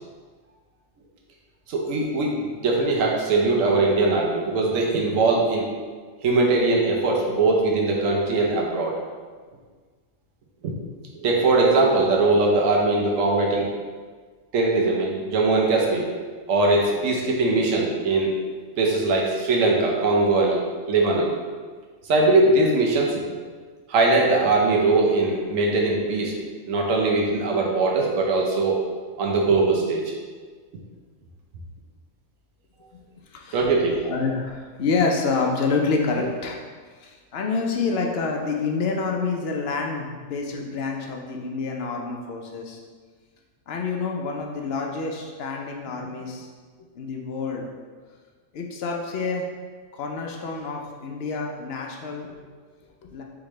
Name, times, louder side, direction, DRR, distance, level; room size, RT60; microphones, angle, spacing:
voice 1, 1.7-5.7 6.2-9.0 10.6-10.7 11.1-13.7 14.5-16.1 16.5-18.3 18.8-20.6 20.9-21.4 22.1-23.2 23.9-26.4 26.7-28.9 29.2-30.1 33.5-34.0, right 3 dB, 90° right, -1 dB, 1.1 m, -21 dB
voice 2, 33.3-33.6 34.0-36.6 37.0-42.8 43.7-46.5 47.0-47.7 48.5-49.5 50.0-52.3 53.0-53.2, left 4 dB, 60° left, 1 dB, 0.8 m, -27 dB
4.9 x 3.4 x 3.1 m, 1.5 s
omnidirectional pair, 1.3 m